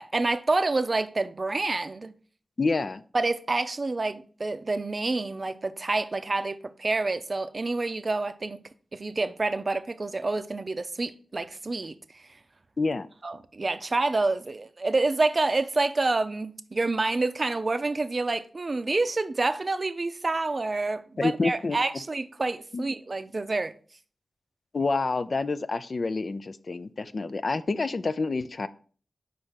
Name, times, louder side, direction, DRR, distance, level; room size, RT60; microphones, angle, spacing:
voice 1, 0.0-2.1 3.1-8.6 8.9-12.2 13.2-23.8, right 3 dB, 50° right, 0.5 m, -28 dB
voice 2, 2.6-3.0 12.8-13.1 21.2-21.8 22.7-22.8 24.7-28.7, left 3 dB, 60° left, 0.4 m, -28 dB
5.1 x 3.4 x 5.6 m
cardioid pair, 45°, 0 cm